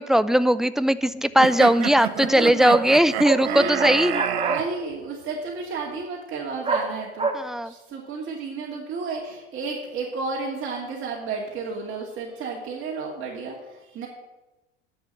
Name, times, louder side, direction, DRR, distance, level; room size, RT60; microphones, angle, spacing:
voice 1, 0.0-4.2 7.3-7.7, equal, ahead, 14 dB, 0.3 m, -19 dB
sound 1, 1.4-4.6, right 10 dB, 65° right, 1.0 m, -29 dB
voice 2, 2.0-2.7 3.3-3.9 4.5-14.1, right 4 dB, 35° right, -2 dB, 2.4 m, -32 dB
sound 2, 2.2-2.3 2.7-2.9 3.2-3.4 3.8-4.6 6.6-6.9 7.2-7.3, right 4 dB, 15° right, 1.7 m, -25 dB
11.0 x 7.2 x 7.6 m, 1.1 s
hypercardioid pair, 75°, 33 cm